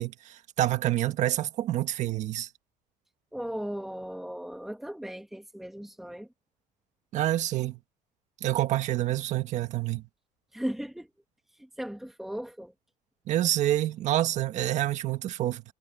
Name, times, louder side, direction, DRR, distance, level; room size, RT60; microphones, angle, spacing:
voice 1, 0.0-2.5 7.1-7.8 8.4-10.0 13.3-15.6, right 13 dB, 50° right, 1.6 m, -27 dB
voice 2, 3.3-6.3 10.5-11.1 11.8-12.7, equal, ahead, 2.0 m, -36 dB
cardioid pair, 170°, 16 cm